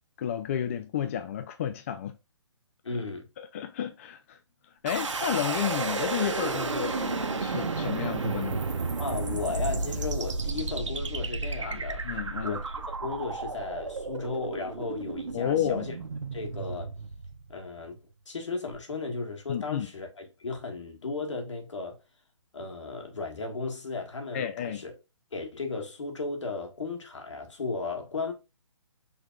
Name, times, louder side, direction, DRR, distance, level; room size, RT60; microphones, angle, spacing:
voice 1, 0.2-2.1 3.4-4.4 4.8-8.6 11.6-11.8 12.0-12.6 15.3-15.9 19.5-19.9 24.3-24.8, left 9 dB, 30° left, 0.3 m, -31 dB
voice 2, 2.8-3.3 9.0-12.1 12.4-15.9 16.3-16.9 17.5-18.0 18.2-22.0 22.5-24.9 25.3-28.3, left 3 dB, 75° left, 1.9 m, -35 dB
sound 1, 4.9-17.8, right 3 dB, 85° right, 0.8 m, -32 dB
5.9 x 3.3 x 2.4 m
hypercardioid pair, 150°, 15 cm